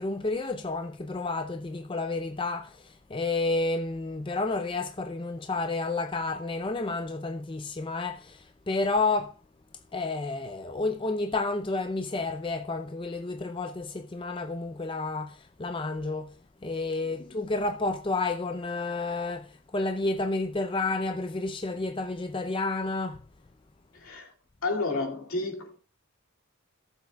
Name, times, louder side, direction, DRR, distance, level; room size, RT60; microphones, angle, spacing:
voice 1, 0.0-9.4 9.9-16.4 16.6-23.2, left 3 dB, 20° left, 0.4 m, -30 dB
voice 2, 23.9-24.3 24.6-25.8, left 3 dB, 70° left, 2.3 m, -31 dB
18.0 x 7.1 x 2.3 m
head